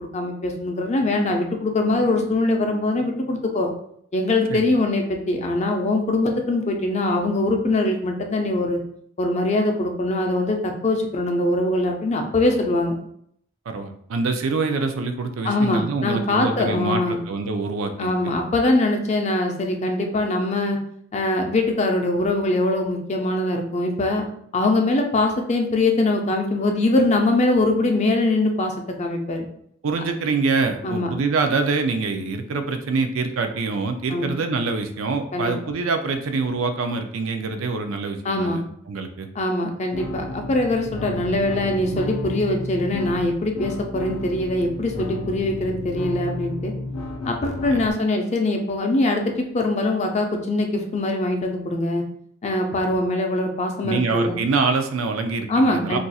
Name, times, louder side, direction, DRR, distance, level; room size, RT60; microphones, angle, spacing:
voice 1, 0.0-3.7 4.1-8.8 9.2-12.9 15.4-17.2 18.0-20.8 21.1-24.3 24.5-29.5 30.8-31.1 34.1-34.3 35.3-35.5 38.2-38.6 39.4-46.7 47.2-52.0 52.4-54.4 55.5-56.0, left 2 dB, 35° left, 3 dB, 0.4 m, -22 dB
voice 2, 13.7-18.1 29.8-38.6 38.9-39.3 53.8-56.0, right 4 dB, 85° right, 6 dB, 0.4 m, -25 dB
sound 1, 39.9-47.9, left 2 dB, 90° left, 0.6 m, -32 dB
2.4 x 2.3 x 4.0 m, 0.67 s
head